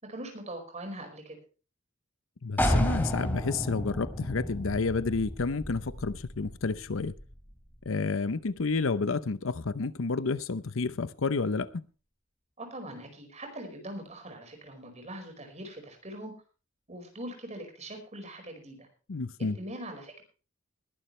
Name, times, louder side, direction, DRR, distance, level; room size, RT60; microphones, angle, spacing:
voice 1, 0.0-1.4 12.6-16.3 16.9-18.9 19.4-20.2, right 1 dB, 35° right, 4.9 m, -42 dB
voice 2, 2.4-7.1 7.9-11.7 19.1-19.6, left 4 dB, 70° left, 0.7 m, -30 dB
sound 1, 2.6-8.1, equal, 10° left, 2.9 m, -32 dB
20.5 x 11.5 x 3.2 m
head